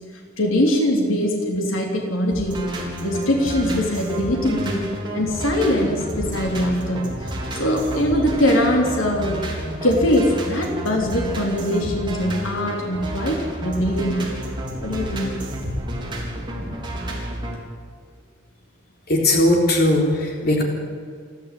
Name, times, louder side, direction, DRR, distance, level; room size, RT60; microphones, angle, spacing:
voice 1, 0.4-2.6 3.0-14.2 14.8-15.4, left 1 dB, 75° left, 1 dB, 3.6 m, -22 dB
sound 1, 2.3-17.5, right 1 dB, 20° right, 4.2 m, -30 dB
voice 2, 19.1-20.6, left 1 dB, 50° left, 0 dB, 3.8 m, -18 dB
29.0 x 11.5 x 8.7 m, 2.1 s
head